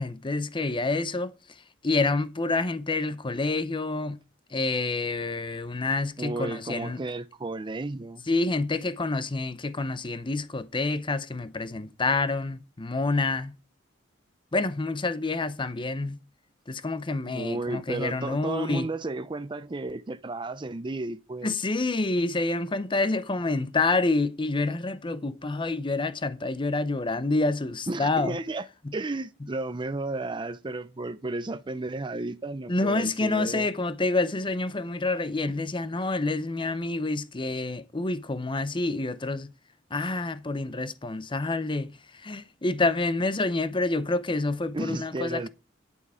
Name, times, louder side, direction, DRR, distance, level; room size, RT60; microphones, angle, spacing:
voice 1, 0.0-1.3 1.8-4.2 4.5-7.0 8.3-13.5 14.5-16.2 16.7-18.9 21.4-28.4 32.7-39.5 39.9-45.5, left 3 dB, 25° left, 0.7 m, -28 dB
voice 2, 6.2-8.2 17.3-21.6 27.9-28.6 28.9-33.7 44.7-45.5, right 2 dB, 25° right, 0.5 m, -33 dB
9.7 x 8.4 x 5.6 m
head